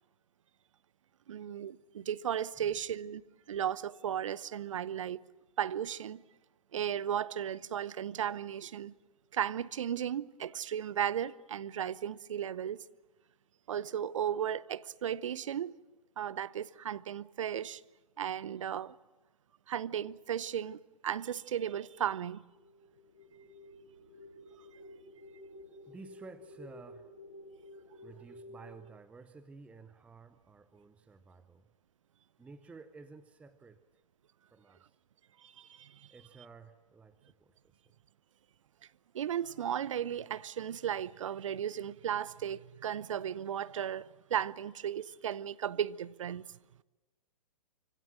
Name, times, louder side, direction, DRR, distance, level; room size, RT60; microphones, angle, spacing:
voice 1, 1.3-3.2 3.5-5.2 5.6-6.2 6.7-8.9 9.3-12.8 13.7-15.7 16.2-17.8 18.2-19.0 19.7-22.4 35.4-36.1 39.1-46.5, right 9 dB, 55° right, 0.8 m, -35 dB
voice 2, 2.5-2.9 23.3-23.5 25.9-27.1 28.0-31.7 32.4-33.8 34.5-35.0 36.1-37.9, right 4 dB, 5° right, 0.8 m, -53 dB
sound 1, 22.5-28.7, left 1 dB, 85° left, 4.7 m, -52 dB
25.5 x 25.0 x 7.5 m
figure-of-eight pair, 120°, 20 cm